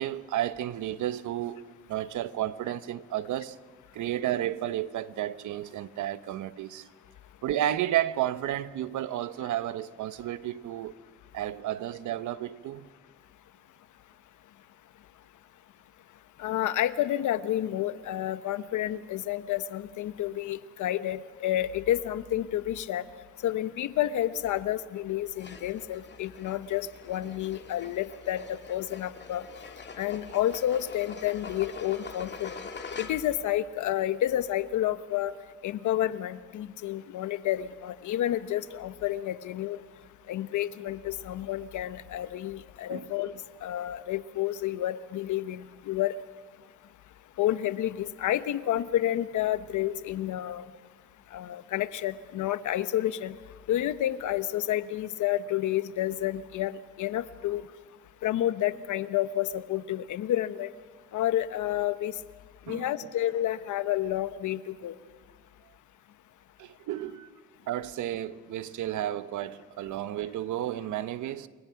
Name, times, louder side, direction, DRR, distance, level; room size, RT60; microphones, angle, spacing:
voice 1, 0.0-3.6 3.9-6.9 7.4-10.9 11.3-12.9 42.9-43.1 62.7-62.8 66.6-67.3 67.7-71.5, right 12 dB, 75° right, 1.0 m, -32 dB
voice 2, 16.4-23.0 23.4-29.4 30.0-32.6 33.0-35.3 35.6-39.8 40.3-43.3 43.6-46.2 47.4-50.7 51.3-53.3 53.7-57.6 58.2-60.7 61.1-62.1 62.7-65.0, left 12 dB, 80° left, 1.1 m, -30 dB
sound 1, 25.4-33.5, left 4 dB, 35° left, 2.1 m, -44 dB
28.5 x 22.5 x 5.8 m
cardioid pair, 90°, 30 cm